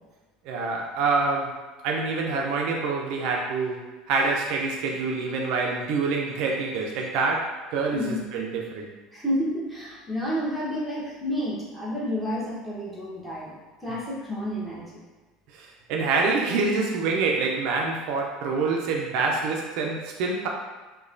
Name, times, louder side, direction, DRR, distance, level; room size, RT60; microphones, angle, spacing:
voice 1, 0.4-1.6 1.8-3.8 4.1-8.9 15.5-20.5, right 4 dB, 65° right, 0 dB, 0.4 m, -26 dB
voice 2, 9.1-13.5 13.8-14.9, equal, ahead, -7 dB, 1.0 m, -30 dB
2.9 x 2.1 x 2.5 m, 1.3 s
supercardioid pair, 90°, 0 cm